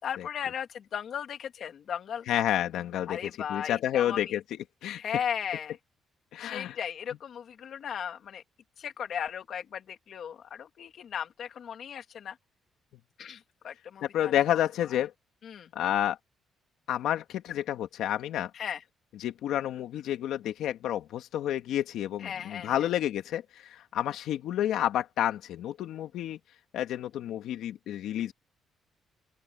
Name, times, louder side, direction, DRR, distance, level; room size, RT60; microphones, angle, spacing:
voice 1, 0.0-2.3 3.1-4.4 5.0-5.8 6.4-8.4 8.8-12.4 13.2-14.3 15.4-15.7 18.5-18.8 22.2-22.9, left 8 dB, 60° left, 2.2 m, -36 dB
voice 2, 2.3-4.4 4.8-5.0 6.3-6.8 14.0-15.1 15.7-16.2 16.9-18.5 19.2-26.4 26.7-28.3, left 11 dB, 80° left, 2.4 m, -30 dB
open air
cardioid pair, 90°, 0 cm